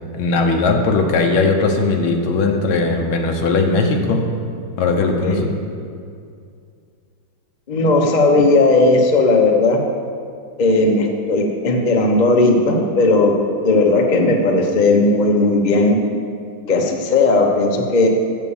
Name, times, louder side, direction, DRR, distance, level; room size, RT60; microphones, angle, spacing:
voice 1, 0.1-4.3 4.8-5.5, left 3 dB, 70° left, 3 dB, 1.7 m, -18 dB
voice 2, 7.7-9.8 10.6-13.4 13.6-16.0 16.7-18.1, left 2 dB, 45° left, 1 dB, 0.5 m, -16 dB
8.4 x 7.5 x 7.1 m, 2.4 s
omnidirectional pair, 2.3 m